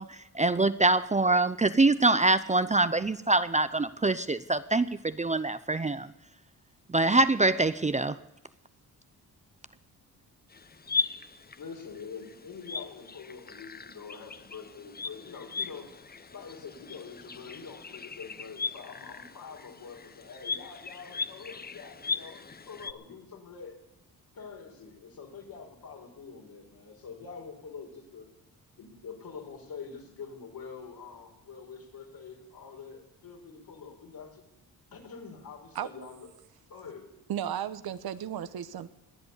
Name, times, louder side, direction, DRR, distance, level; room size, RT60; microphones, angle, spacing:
voice 1, 0.0-6.1 6.9-8.2, right 2 dB, 20° right, 14 dB, 0.6 m, -24 dB
sound 1, 10.5-22.9, left 5 dB, 25° left, 0.7 m, -38 dB
voice 2, 11.5-15.9 16.3-23.8 24.3-28.3 28.7-34.4 34.9-36.3 36.7-37.1, left 5 dB, 70° left, 1 dB, 4.5 m, -45 dB
voice 3, 37.3-38.9, right 10 dB, 75° right, 13 dB, 1.0 m, -34 dB
21.0 x 8.0 x 8.2 m, 0.93 s
cardioid pair, 80°, 37 cm